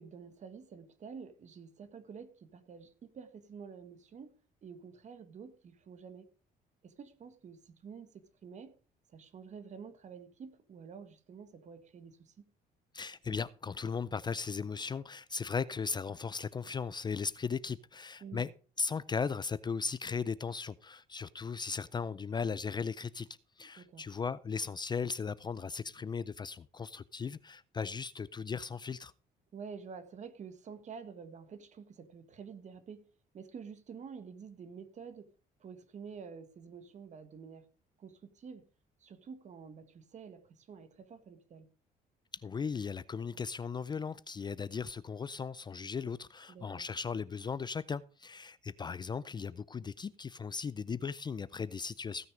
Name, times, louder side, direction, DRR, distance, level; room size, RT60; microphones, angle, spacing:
voice 1, 0.0-4.3 4.6-6.3 6.8-8.8 9.1-12.4 18.2-18.5 23.6-24.1 29.5-35.3 35.6-37.7 38.0-38.6 39.0-41.7 46.5-46.9, right 6 dB, 45° right, 1.7 m, -49 dB
voice 2, 12.9-18.5 18.8-23.3 23.6-29.1 42.3-52.3, left 5 dB, 25° left, 0.4 m, -37 dB
16.5 x 6.3 x 5.1 m
cardioid pair, 110°, 17 cm